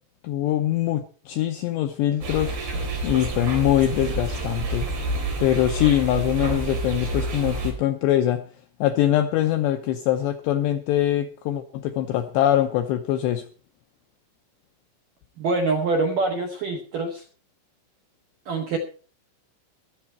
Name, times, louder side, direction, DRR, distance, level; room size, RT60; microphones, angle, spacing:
voice 1, 0.2-2.5 3.0-4.9 5.4-8.4 8.8-13.5, left 12 dB, 85° left, 7 dB, 2.5 m, -23 dB
sound 1, 2.2-7.7, right 2 dB, 50° right, 5.6 m, -28 dB
voice 2, 15.4-17.2 18.5-18.8, right 3 dB, 70° right, 3 dB, 2.0 m, -25 dB
16.0 x 13.0 x 4.5 m, 0.39 s
omnidirectional pair, 6.0 m